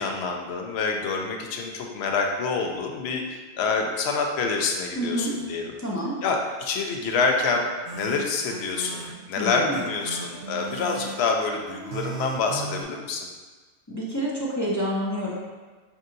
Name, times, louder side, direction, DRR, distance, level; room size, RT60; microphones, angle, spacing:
voice 1, 0.0-5.7 6.2-7.7 7.9-13.3, left 4 dB, 80° left, 2 dB, 0.8 m, -27 dB
voice 2, 4.9-5.3 5.8-6.2 9.4-9.8 13.9-15.5, equal, 25° left, -6 dB, 0.4 m, -28 dB
sound 1, 7.9-12.8, right 5 dB, 70° right, 0.8 m, -38 dB
5.4 x 2.7 x 2.5 m, 1.3 s
omnidirectional pair, 1.1 m